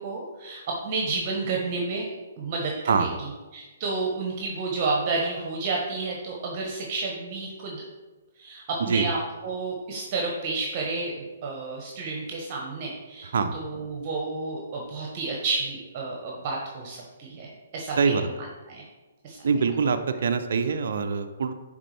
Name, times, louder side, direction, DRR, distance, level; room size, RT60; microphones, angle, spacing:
voice 1, 0.0-2.1 2.4-7.8 8.4-18.3 18.7-18.8 19.2-19.5, right 3 dB, 35° right, -1 dB, 1.0 m, -31 dB
voice 2, 18.0-18.3 19.4-21.5, right 5 dB, 55° right, 7 dB, 0.5 m, -24 dB
9.8 x 3.6 x 3.3 m, 1.2 s
figure-of-eight pair, 125°, 0 cm